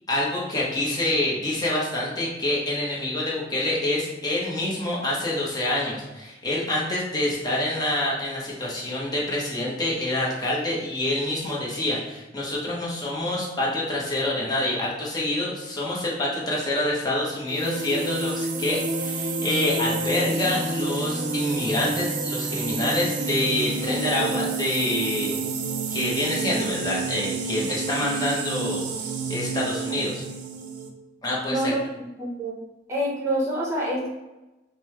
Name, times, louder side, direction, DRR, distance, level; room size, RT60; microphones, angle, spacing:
voice 1, 0.1-25.4 25.9-30.2 31.2-31.7, left 1 dB, 20° left, -5 dB, 0.9 m, -27 dB
sound 1, 17.5-30.9, right 4 dB, 45° right, 0.4 m, -29 dB
voice 2, 23.9-24.6 31.5-32.5 32.9-34.1, right 1 dB, 15° right, -4 dB, 0.9 m, -28 dB
5.2 x 2.1 x 3.1 m, 1.0 s
head